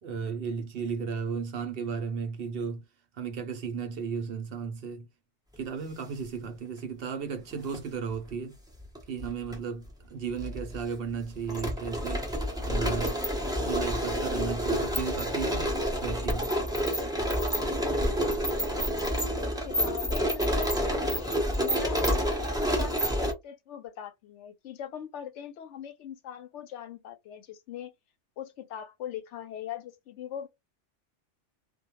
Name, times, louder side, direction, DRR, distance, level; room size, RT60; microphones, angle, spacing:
voice 1, 0.0-2.8 3.1-5.1 5.6-8.6 9.1-12.3 12.6-13.2 13.6-16.5, right 6 dB, 60° right, 0.7 m, -35 dB
sound 1, 7.5-7.8 8.8-9.6 9.8-9.9 10.4-23.3, equal, 5° right, 0.5 m, -28 dB
voice 2, 17.9-19.2 19.6-27.9 28.4-30.5, left 9 dB, 80° left, 0.9 m, -41 dB
2.2 x 2.1 x 2.9 m
omnidirectional pair, 1.2 m